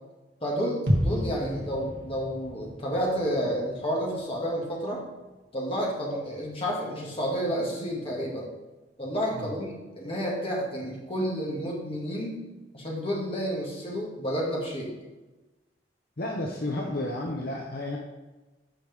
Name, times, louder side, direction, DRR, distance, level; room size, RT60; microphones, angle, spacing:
voice 1, 0.4-5.0 5.5-8.5 9.0-12.4 12.7-14.9, equal, 35° left, -3 dB, 2.2 m, -30 dB
sound 1, 0.9-4.8 5.1-5.2, equal, 70° right, 1.5 m, -31 dB
voice 2, 16.2-18.0, left 1 dB, 60° left, 0 dB, 0.9 m, -32 dB
14.0 x 4.9 x 3.6 m, 1.1 s
head